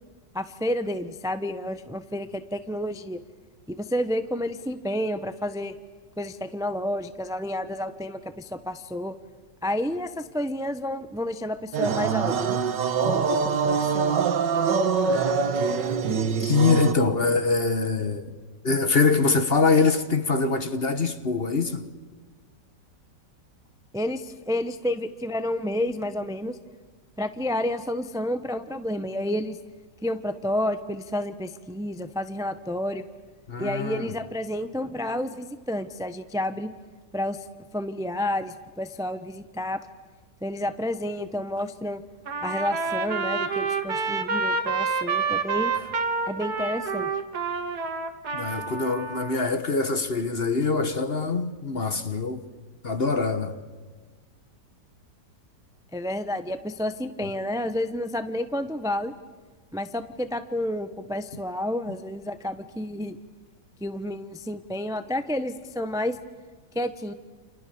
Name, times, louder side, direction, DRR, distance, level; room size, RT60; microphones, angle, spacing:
voice 1, 0.3-3.2 3.7-5.7 6.2-9.1 9.6-12.6 13.1-14.3 23.9-26.6 27.2-29.6 30.0-33.0 33.6-36.7 37.1-37.4 37.7-39.8 40.4-42.0 42.4-45.7 46.3-47.1 55.9-59.1 59.7-63.2 63.8-66.2 66.7-67.1, left 1 dB, 5° right, 0.7 m, -30 dB
sound 1, 11.7-16.9, right 5 dB, 85° right, 1.9 m, -24 dB
voice 2, 15.8-18.3 18.6-21.9 33.5-34.1 48.3-52.4 52.8-53.6, left 4 dB, 35° left, 1.4 m, -24 dB
Trumpet, 42.3-49.4, right 4 dB, 65° right, 2.3 m, -28 dB
29.5 x 28.5 x 7.0 m
omnidirectional pair, 1.9 m